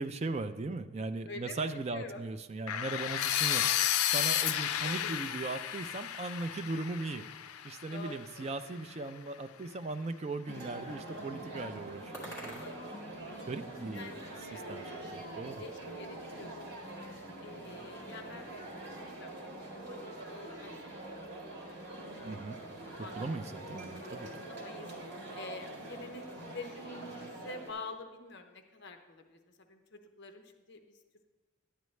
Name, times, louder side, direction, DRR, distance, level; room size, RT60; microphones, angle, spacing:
voice 1, 0.0-3.7 4.0-7.3 7.6-12.6 13.4-14.1 14.5-14.8 15.1-15.6 22.2-22.6 23.2-24.3, right 3 dB, 30° right, 9 dB, 0.3 m, -38 dB
voice 2, 1.2-2.2 3.4-3.7 4.8-5.2 7.8-8.6 12.6-12.9 13.9-14.7 15.6-16.6 17.4-18.5 18.9-22.4 22.6-23.1 24.0-24.1 24.4-24.9 25.3-29.4 29.7-31.0, left 3 dB, 50° left, 6 dB, 0.7 m, -48 dB
sound 1, 2.7-8.6, left 11 dB, 90° left, 0.4 m, -32 dB
sound 2, 6.5-13.7, right 1 dB, 15° left, 2.0 m, -54 dB
sound 3, 10.5-27.7, right 1 dB, 55° right, 1.8 m, -44 dB
11.5 x 9.2 x 3.2 m, 1.3 s
head